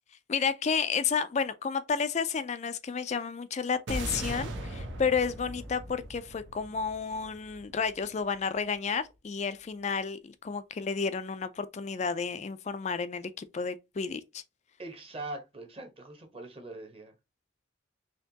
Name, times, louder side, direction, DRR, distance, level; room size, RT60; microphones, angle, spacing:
voice 1, 0.3-14.4, left 5 dB, 35° left, 0.3 m, -31 dB
sound 1, 3.9-8.3, right 1 dB, 70° right, 0.9 m, -39 dB
voice 2, 14.8-17.1, right 2 dB, 30° right, 0.9 m, -42 dB
4.3 x 2.9 x 2.8 m
head